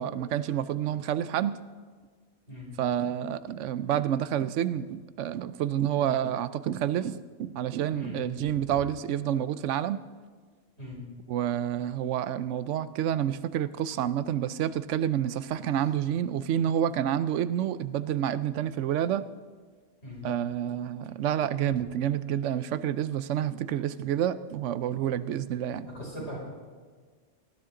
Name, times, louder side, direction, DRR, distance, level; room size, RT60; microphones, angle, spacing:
voice 1, 0.0-1.6 2.8-10.0 11.3-19.2 20.2-25.9, right 10 dB, 85° right, 15 dB, 0.9 m, -29 dB
voice 2, 7.8-8.8 10.8-11.0 20.0-20.3 25.9-26.4, left 1 dB, 65° left, -5 dB, 6.2 m, -41 dB
19.0 x 13.5 x 3.8 m, 1.5 s
omnidirectional pair, 1.2 m